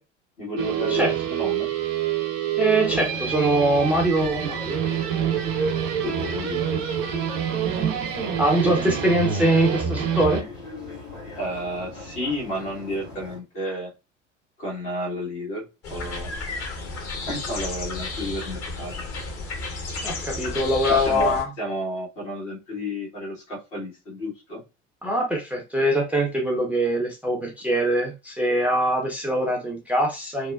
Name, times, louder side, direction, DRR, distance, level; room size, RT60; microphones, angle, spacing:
voice 1, 0.4-1.7 6.0-6.8 11.4-13.9 14.6-16.3 17.3-18.9 20.9-24.6, equal, 70° left, -4 dB, 1.5 m, -31 dB
sound 1, 0.6-10.4, right 9 dB, 55° right, 0.6 m, -26 dB
voice 2, 2.6-4.8 8.4-10.4 20.0-21.5 25.0-30.5, right 1 dB, 5° right, -1 dB, 0.4 m, -23 dB
sound 2, 2.8-13.4, left 3 dB, 90° left, 1.5 m, -40 dB
sound 3, 15.8-21.4, left 3 dB, 40° left, 0.9 m, -32 dB
2.8 x 2.1 x 2.2 m, 0.27 s
figure-of-eight pair, 65°, 37 cm